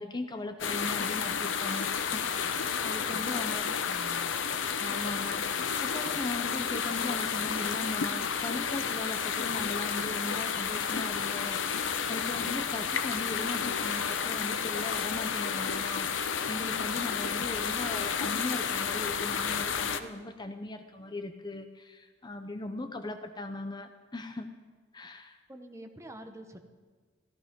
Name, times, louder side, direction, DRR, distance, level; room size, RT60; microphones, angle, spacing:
voice 1, 0.0-3.7 4.8-24.5 24.9-25.4, left 2 dB, 25° left, 6 dB, 0.7 m, -39 dB
sound 1, 0.6-20.0, left 6 dB, 75° left, 0.8 m, -31 dB
voice 2, 3.1-4.3 25.5-26.6, equal, 15° right, 6 dB, 1.0 m, -47 dB
14.5 x 14.0 x 5.3 m, 1.5 s
head